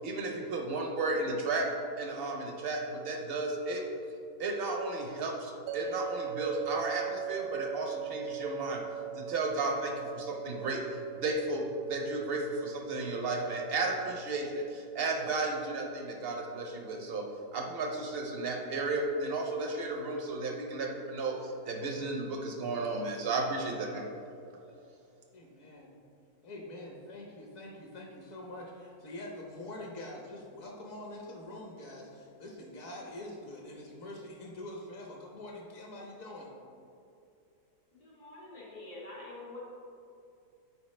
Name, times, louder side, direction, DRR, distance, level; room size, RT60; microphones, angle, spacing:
voice 1, 0.0-1.7 2.0-3.8 4.4-8.8 9.2-10.8 11.2-17.3 17.5-24.0, right 2 dB, 55° right, 1 dB, 0.6 m, -33 dB
sound 1, 5.7-18.8, right 9 dB, 75° right, 1.2 m, -42 dB
voice 2, 25.3-25.9 26.4-36.5, left 1 dB, 60° left, -1 dB, 1.1 m, -45 dB
voice 3, 38.0-39.6, left 2 dB, 85° left, -6 dB, 2.2 m, -46 dB
8.2 x 4.6 x 3.2 m, 2.5 s
omnidirectional pair, 1.7 m